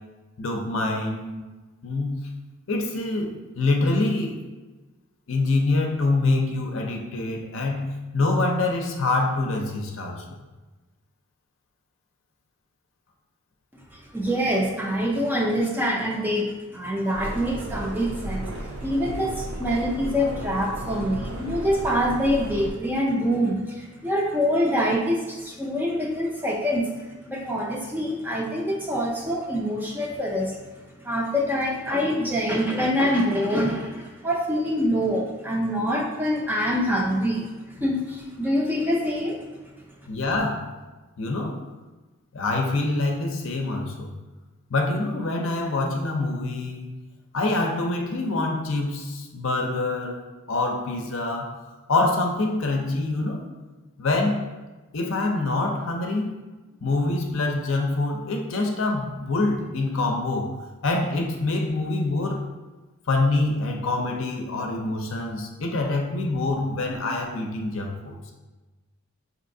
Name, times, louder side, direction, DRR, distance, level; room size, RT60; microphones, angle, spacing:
voice 1, 0.4-1.4 1.8-2.3 2.7-4.4 5.3-10.3 40.1-40.7 41.2-41.6 42.3-44.1 44.7-46.9 47.3-51.5 51.9-53.4 54.0-54.4 54.9-56.3 56.8-60.6 60.8-62.4 63.1-68.2, left 2 dB, 60° left, 2 dB, 0.6 m, -25 dB
voice 2, 13.9-26.9 27.3-30.6 31.0-39.4, equal, 10° right, -2 dB, 0.4 m, -25 dB
sound 1, 17.1-22.7, right 1 dB, 70° right, 0.6 m, -34 dB
5.4 x 2.8 x 2.6 m, 1.2 s
head